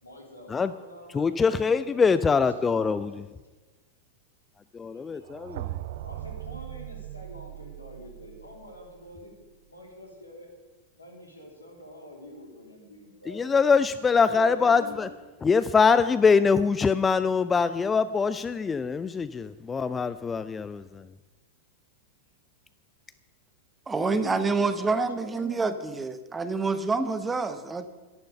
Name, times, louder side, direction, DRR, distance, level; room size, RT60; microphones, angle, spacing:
voice 1, 0.0-3.1 5.1-5.2 5.5-9.3 9.7-10.5 10.9-13.6 14.3-15.1 24.0-25.7, left 1 dB, 80° left, 0 dB, 3.2 m, -45 dB
voice 2, 1.1-3.2 4.7-5.7 13.3-15.1 15.4-21.0, left 5 dB, 15° left, 14 dB, 0.4 m, -23 dB
sound 1, 5.2-9.2, right 14 dB, 55° right, 0.4 m, -39 dB
voice 3, 23.9-27.9, right 4 dB, 15° right, 11 dB, 0.9 m, -27 dB
13.0 x 11.0 x 6.8 m, 1.2 s
figure-of-eight pair, 90°, 0 cm